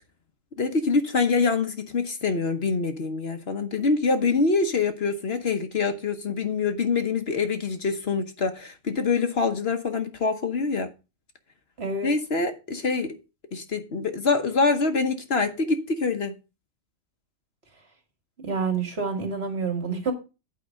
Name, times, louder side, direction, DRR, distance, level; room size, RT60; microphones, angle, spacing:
voice 1, 0.6-10.9 12.0-13.2 13.5-16.3, left 4 dB, 55° left, 1.2 m, -25 dB
voice 2, 11.8-12.1 18.4-20.1, right 4 dB, 50° right, 2.2 m, -28 dB
8.7 x 5.0 x 6.3 m
omnidirectional pair, 1.4 m